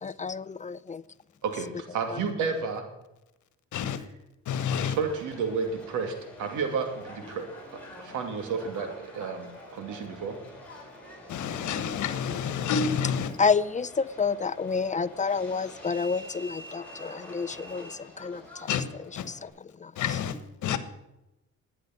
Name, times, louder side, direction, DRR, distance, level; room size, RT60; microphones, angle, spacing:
voice 1, 0.0-1.0 2.1-2.2 13.4-18.7 19.3-19.9, left 5 dB, 25° left, 0.5 m, -29 dB
voice 2, 1.4-2.8 4.8-7.4 8.0-10.4, right 5 dB, 85° right, 2.6 m, -31 dB
voice 3, 3.7-4.1 4.4-5.0 11.3-13.3 18.7-18.9 19.1-19.3 20.0-20.8, left 7 dB, 75° left, 1.4 m, -29 dB
Subway metro underground, 4.9-19.5, equal, 5° left, 6.2 m, -47 dB
12.0 x 9.9 x 5.9 m
cardioid pair, 90°, 30 cm